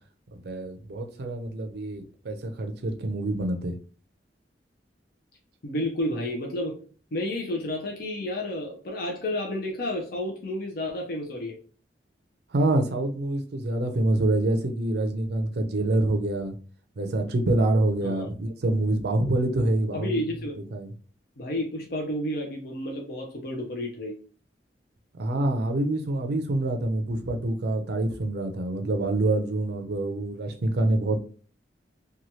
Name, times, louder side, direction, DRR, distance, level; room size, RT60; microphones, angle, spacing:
voice 1, 0.3-3.8 12.5-16.5 17.0-20.2 20.6-20.9 25.2-31.2, right 2 dB, 65° right, 0.5 m, -26 dB
voice 2, 5.6-6.8 7.1-11.6 18.0-18.3 19.9-20.5 21.4-24.2, left 1 dB, 55° left, 0.6 m, -31 dB
3.0 x 2.2 x 2.7 m
head